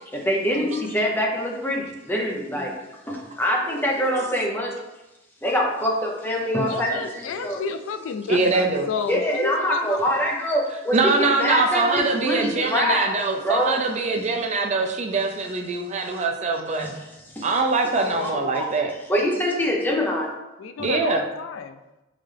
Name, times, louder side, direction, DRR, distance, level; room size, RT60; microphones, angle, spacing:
voice 1, 0.1-2.8 3.1-4.8 5.4-7.6 8.4-8.5 9.1-13.8 16.8-16.9 17.3-17.5 18.2-18.6 19.1-20.3, equal, 10° left, -1 dB, 0.7 m, -24 dB
voice 2, 6.7-10.0 17.9-18.7 20.6-21.8, left 5 dB, 80° left, 9 dB, 0.3 m, -31 dB
voice 3, 8.3-8.8 10.9-16.9 17.4-18.9 20.8-21.2, right 3 dB, 35° right, 3 dB, 0.4 m, -23 dB
4.1 x 3.7 x 3.3 m, 1.0 s
head